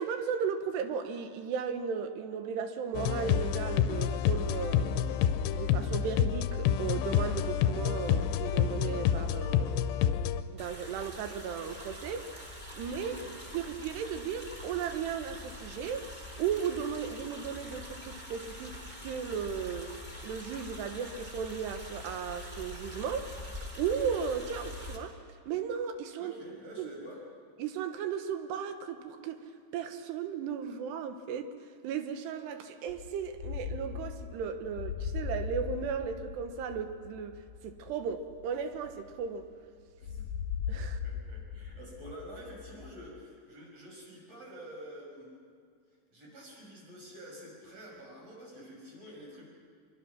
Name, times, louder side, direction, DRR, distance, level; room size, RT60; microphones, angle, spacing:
voice 1, 0.0-5.2 5.5-10.0 10.5-12.5 12.7-13.1 13.5-19.9 20.2-25.2 25.5-26.3 26.8-27.0 27.6-29.4 29.7-31.5 31.8-39.5 40.7-41.0, right 7 dB, 80° right, 8 dB, 3.3 m, -35 dB
sound 1, 2.9-10.4, left 9 dB, 85° left, 2.9 m, -28 dB
sound 2, 10.6-25.0, left 1 dB, 15° right, 2.3 m, -44 dB
voice 2, 12.9-13.3 26.2-27.2 40.0-40.2 40.8-45.3 46.1-49.5, equal, 40° right, -2 dB, 6.8 m, -48 dB
sound 3, 32.9-39.5 40.0-43.2, left 7 dB, 65° left, 2.4 m, -39 dB
25.5 x 23.0 x 6.0 m, 2.1 s
omnidirectional pair, 4.8 m